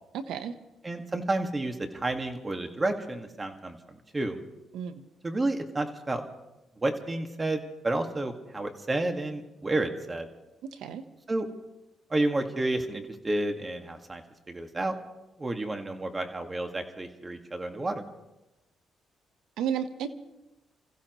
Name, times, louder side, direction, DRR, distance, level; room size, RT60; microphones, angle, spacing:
voice 1, 0.1-0.6 4.7-5.0 10.6-11.0 19.6-20.1, right 8 dB, 85° right, 10 dB, 1.1 m, -32 dB
voice 2, 0.8-4.4 5.2-6.2 6.8-10.3 11.3-11.5 12.1-15.0 15.4-18.0, right 2 dB, 25° right, 5 dB, 1.9 m, -31 dB
29.0 x 15.5 x 3.1 m, 0.98 s
cardioid pair, 90°, 0 cm